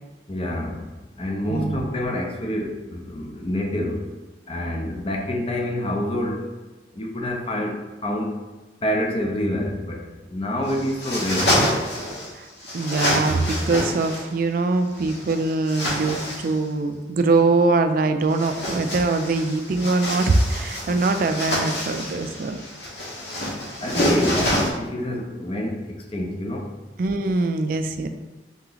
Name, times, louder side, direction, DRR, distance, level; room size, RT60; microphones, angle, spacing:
voice 1, 0.3-0.9 1.2-4.0 4.5-6.5 7.0-8.4 8.8-11.6 23.8-25.8 26.1-26.7, left 1 dB, 30° left, 1 dB, 0.6 m, -27 dB
voice 2, 1.5-1.9 12.4-12.5 12.7-22.6 23.9-24.3 27.0-28.1, right 3 dB, 50° right, 7 dB, 0.3 m, -22 dB
sound 1, 10.6-12.3 12.6-14.3 15.0-16.6 18.2-24.7, left 1 dB, 65° left, 1.2 m, -27 dB
3.9 x 2.9 x 3.8 m, 1.2 s
head